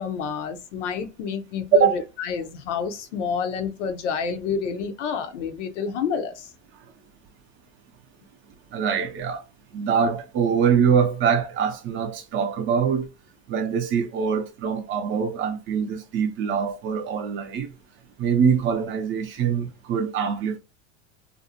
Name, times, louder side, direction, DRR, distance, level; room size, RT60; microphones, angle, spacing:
voice 1, 0.0-6.5, left 6 dB, 80° left, 0.7 m, -29 dB
voice 2, 8.7-9.4 9.7-13.1 13.5-17.7 18.2-20.6, right 6 dB, 35° right, 0.5 m, -23 dB
2.6 x 2.0 x 2.7 m
supercardioid pair, 110°, 36 cm